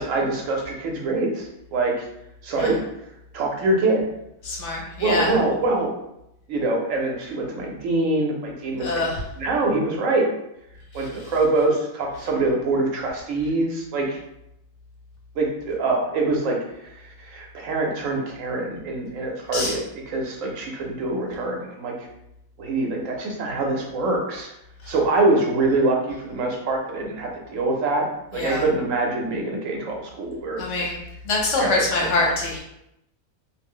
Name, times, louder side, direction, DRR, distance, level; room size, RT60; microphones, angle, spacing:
voice 1, 0.0-2.0 2.4-2.8 3.3-4.0 5.0-5.9 6.5-9.0 9.4-10.3 10.9-14.2 15.4-22.1 22.6-24.5 24.9-28.1 28.3-30.9 31.6-31.8, right 2 dB, 75° right, 0 dB, 1.0 m, -24 dB
voice 2, 4.4-5.3 8.8-9.2 10.9-11.1 19.5-19.7 24.8-24.9 28.3-28.6 30.6-31.0 31.2-32.6, left 2 dB, 60° left, -3 dB, 1.0 m, -24 dB
2.5 x 2.0 x 3.5 m, 0.82 s
omnidirectional pair, 1.4 m